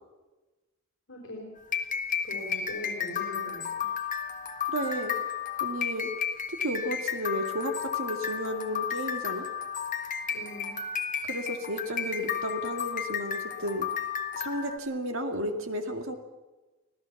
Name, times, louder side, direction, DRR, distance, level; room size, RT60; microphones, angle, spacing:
voice 1, 1.1-1.5 2.2-3.6 10.3-10.8, left 1 dB, 60° left, -3 dB, 5.0 m, -40 dB
sound 1, 1.6-14.8, left 7 dB, 40° left, 1.7 m, -33 dB
voice 2, 4.7-5.1 5.6-6.1 6.5-9.4 11.2-13.9 14.3-16.1, equal, 65° right, 5 dB, 2.2 m, -33 dB
25.5 x 16.0 x 7.1 m, 1.2 s
head